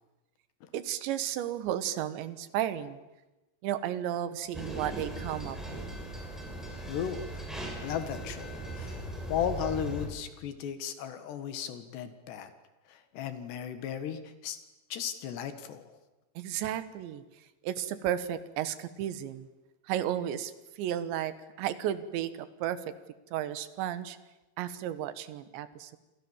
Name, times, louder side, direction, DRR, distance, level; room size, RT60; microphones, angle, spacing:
voice 1, 0.7-3.0 3.6-5.9 16.4-17.2 17.6-19.5 19.9-20.5 20.8-22.9 23.3-24.2 24.6-26.0, right 11 dB, 85° right, 13 dB, 3.6 m, -33 dB
sound 1, 4.5-10.1, right 1 dB, ahead, 6.8 m, -39 dB
voice 2, 6.9-7.5 7.8-9.0 9.3-12.5 12.9-14.6 14.9-15.9, left 8 dB, 75° left, 10 dB, 3.7 m, -35 dB
28.0 x 27.0 x 7.3 m, 1.0 s
omnidirectional pair, 5.0 m